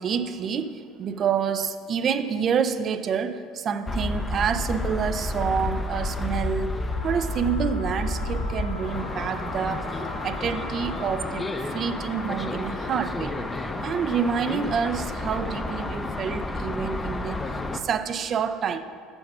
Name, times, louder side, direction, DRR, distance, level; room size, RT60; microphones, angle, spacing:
voice 1, 0.0-6.8 7.0-9.8 10.2-13.3 13.8-17.4 17.7-18.8, right 7 dB, 45° right, 11 dB, 0.5 m, -28 dB
sound 1, 3.9-17.8, left 2 dB, 20° left, 0.6 m, -30 dB
Wind instrument woodwind instrument, 6.7-15.9, left 2 dB, 70° left, 1.1 m, -44 dB
6.9 x 5.2 x 6.0 m, 2.4 s
hypercardioid pair, 70°, 0 cm